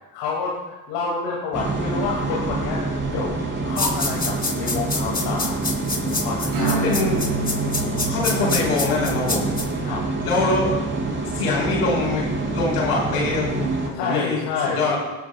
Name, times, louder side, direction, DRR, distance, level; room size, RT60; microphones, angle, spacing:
voice 1, 0.1-2.8 3.1-3.4 3.6-5.6 6.0-6.8 9.8-10.0 13.9-14.9, left 4 dB, 70° left, -4 dB, 2.4 m, -28 dB
sound 1, 1.5-13.9, right 3 dB, 25° right, 4.7 m, -26 dB
sound 2, 3.8-9.6, left 3 dB, 20° left, 2.7 m, -26 dB
Acoustic guitar / Strum, 6.5-12.7, right 2 dB, 85° right, 4.4 m, -31 dB
voice 2, 6.8-7.2 8.1-9.5 10.2-10.8 11.3-12.3 12.5-14.4 14.7-15.0, left 3 dB, 90° left, -2 dB, 4.7 m, -23 dB
18.5 x 12.0 x 2.3 m, 1.1 s
hypercardioid pair, 75°, 44 cm